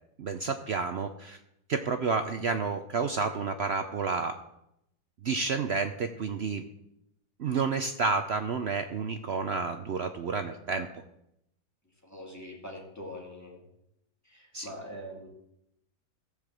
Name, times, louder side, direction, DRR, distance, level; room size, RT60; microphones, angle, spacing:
voice 1, 0.2-1.4 1.7-4.3 5.2-6.6 7.4-10.9 14.5-14.7, right 4 dB, 60° right, 8 dB, 0.6 m, -30 dB
voice 2, 12.0-13.6 14.2-15.3, equal, 10° left, -2 dB, 2.6 m, -43 dB
14.0 x 5.1 x 7.5 m, 0.81 s
omnidirectional pair, 1.7 m